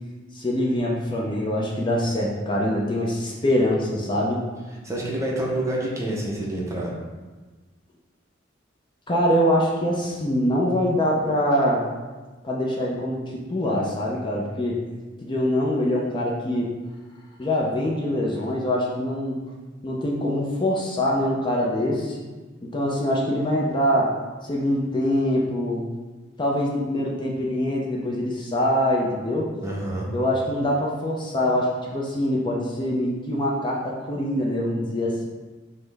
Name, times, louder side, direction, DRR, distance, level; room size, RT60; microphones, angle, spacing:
voice 1, 0.3-4.4 9.1-11.8 12.4-13.2 13.5-14.8 15.2-16.7 17.4-19.4 19.8-22.2 22.6-24.2 24.4-25.8 26.4-29.5 30.1-35.3, left 1 dB, 25° left, -3 dB, 0.5 m, -24 dB
voice 2, 4.8-7.0 29.6-30.1, right 1 dB, 15° right, -4 dB, 0.7 m, -27 dB
5.5 x 2.1 x 3.3 m, 1.3 s
head